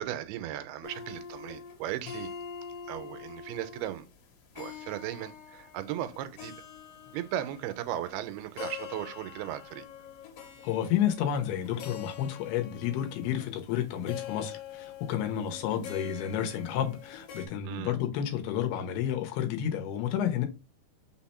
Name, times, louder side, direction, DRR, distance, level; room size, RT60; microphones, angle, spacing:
voice 1, 0.0-2.3 2.9-4.1 4.6-6.5 7.1-9.9 17.6-17.9, right 12 dB, 90° right, 2.5 m, -36 dB
sound 1, 0.8-17.5, left 7 dB, 70° left, 2.4 m, -45 dB
voice 2, 10.6-20.5, left 10 dB, 90° left, 2.7 m, -30 dB
5.8 x 2.1 x 4.1 m
omnidirectional pair, 4.3 m